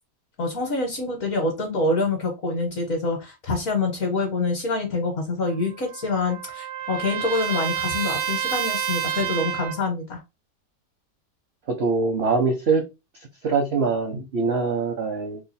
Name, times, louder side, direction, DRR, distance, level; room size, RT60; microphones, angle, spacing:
voice 1, 0.4-10.2, left 3 dB, 55° left, 1.2 m, -26 dB
Trumpet, 5.4-9.8, right 9 dB, 90° right, 1.2 m, -29 dB
voice 2, 11.7-12.8 13.4-15.4, right 4 dB, 60° right, 0.6 m, -23 dB
3.0 x 2.4 x 4.1 m
omnidirectional pair, 1.9 m